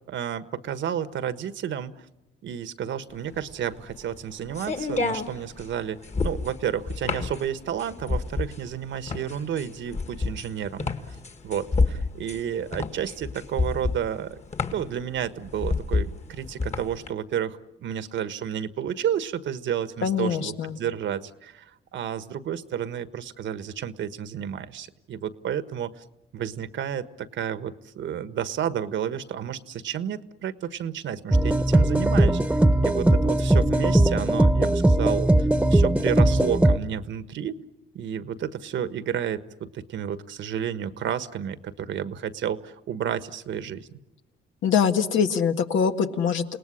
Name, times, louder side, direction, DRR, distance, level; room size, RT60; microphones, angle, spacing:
voice 1, 0.1-2.0 2.4-10.9 11.4-14.4 14.7-26.0 26.3-37.6 37.9-43.9, right 9 dB, 70° right, 12 dB, 1.4 m, -31 dB
sound 1, 3.2-17.1, left 3 dB, 35° left, 1.8 m, -29 dB
voice 2, 20.0-20.8 44.6-46.4, left 7 dB, 75° left, 6 dB, 1.8 m, -23 dB
sound 2, 31.3-36.8, right 1 dB, 5° right, 1.2 m, -19 dB
29.0 x 18.5 x 10.0 m, 0.97 s
cardioid pair, 90°, 20 cm